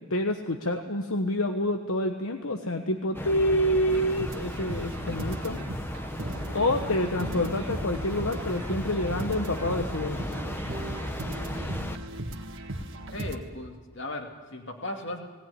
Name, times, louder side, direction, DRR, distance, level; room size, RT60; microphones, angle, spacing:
voice 1, 0.1-5.6 6.5-10.2, left 1 dB, 75° left, 5 dB, 1.2 m, -27 dB
sound 1, 3.1-12.0, left 1 dB, 10° left, 0.9 m, -35 dB
sound 2, 3.9-13.4, right 1 dB, 60° right, 1.7 m, -37 dB
voice 2, 5.1-5.6 13.1-15.2, left 1 dB, 55° left, 3 dB, 2.5 m, -37 dB
18.5 x 18.0 x 9.8 m, 1.4 s
head